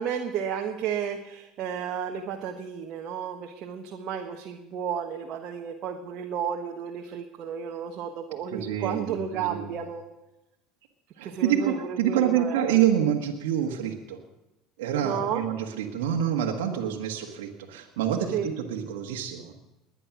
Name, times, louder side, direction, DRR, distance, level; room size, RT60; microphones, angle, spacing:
voice 1, 0.0-10.0 11.2-12.6 15.0-15.4 18.3-18.5, right 7 dB, 55° right, 3 dB, 1.4 m, -32 dB
voice 2, 8.5-9.7 11.2-14.2 14.8-19.5, right 10 dB, 80° right, 0 dB, 1.6 m, -27 dB
20.5 x 9.9 x 6.1 m, 0.99 s
hypercardioid pair, 80°, 0 cm